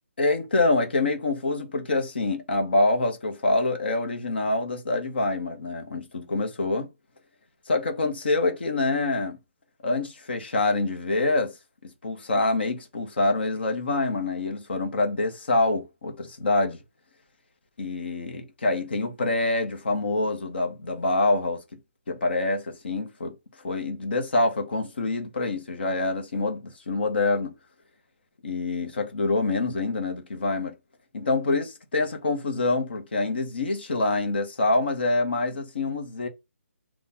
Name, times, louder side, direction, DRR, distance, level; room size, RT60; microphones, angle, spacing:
voice 1, 0.2-6.9 7.7-9.4 9.8-11.5 11.8-16.8 17.8-21.6 22.1-23.3 23.6-27.5 28.4-30.7 31.1-36.3, left 2 dB, 45° left, 1.1 m, -26 dB
3.9 x 2.4 x 4.2 m
hypercardioid pair, 180°, 7 cm